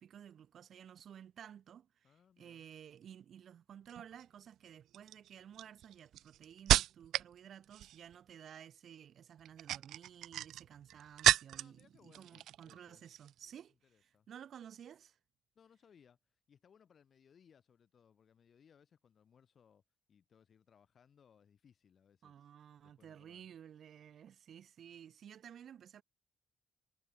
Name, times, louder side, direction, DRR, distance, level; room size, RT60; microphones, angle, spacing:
voice 1, 0.0-15.2 22.2-26.0, right 9 dB, 60° right, 5.0 m, -54 dB
voice 2, 2.0-2.7 11.5-13.1 13.8-14.3 15.5-19.8 20.1-22.5 22.8-23.5, left 7 dB, 50° left, 7.9 m, -67 dB
sound 1, 3.9-4.2 4.9-7.3 7.6-8.1 9.4-11.8 12.1-12.8 13.1-13.3, right 13 dB, 80° right, 0.4 m, -33 dB
cardioid pair, 90°, 0 cm